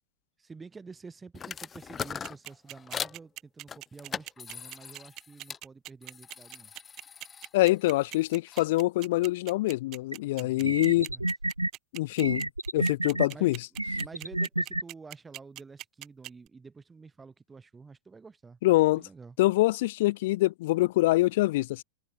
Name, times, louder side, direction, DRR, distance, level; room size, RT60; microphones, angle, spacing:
voice 1, 0.4-6.7 10.4-11.3 13.3-18.6 18.9-19.4, right 4 dB, 15° right, 3.3 m, -49 dB
sound 1, 1.3-3.2 3.7-5.6 6.0-8.7, left 7 dB, 20° left, 0.9 m, -41 dB
sound 2, 2.0-16.5, right 17 dB, 35° right, 1.2 m, -42 dB
voice 2, 7.5-11.1 11.9-13.6 18.6-19.0 19.4-21.8, left 18 dB, 50° left, 0.7 m, -25 dB
sound 3, 10.1-10.2 10.6-11.7 12.2-13.3 13.8-14.8, right 1 dB, 85° right, 0.6 m, -29 dB
figure-of-eight pair, 90°, 0 cm